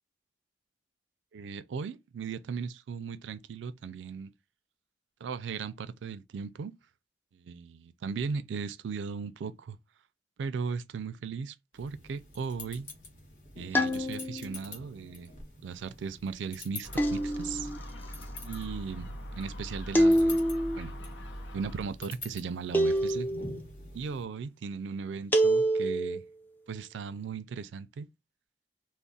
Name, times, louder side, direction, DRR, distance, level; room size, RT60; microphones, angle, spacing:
voice 1, 1.3-4.3 5.2-6.7 7.3-9.8 10.4-12.9 13.5-15.3 15.6-17.7 18.4-19.1 19.4-20.4 20.7-20.9 21.5-23.3 23.9-26.2 26.7-28.1, right 5 dB, 85° right, 0.4 m, -37 dB
sound 1, 11.7-24.2, left 3 dB, 50° left, 1.0 m, -48 dB
sound 2, 13.7-14.6 17.0-17.8 19.9-20.8 22.7-23.6 25.3-26.2, right 1 dB, 10° left, 0.3 m, -26 dB
Gull seagull, 16.8-21.9, equal, 85° left, 0.6 m, -42 dB
2.4 x 2.0 x 3.8 m
head